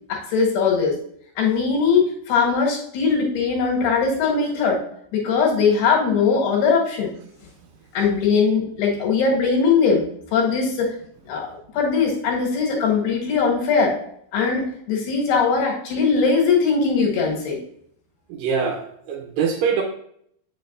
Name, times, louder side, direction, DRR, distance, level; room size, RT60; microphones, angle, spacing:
voice 1, 0.1-1.0 1.4-4.8 5.1-7.1 7.9-10.0 10.3-10.9 11.3-11.5 11.7-14.0 14.3-17.6, left 5 dB, 85° left, -1 dB, 3.7 m, -20 dB
voice 2, 18.3-19.8, right 6 dB, 75° right, 2 dB, 2.3 m, -23 dB
8.0 x 6.7 x 2.6 m, 0.67 s
omnidirectional pair, 4.5 m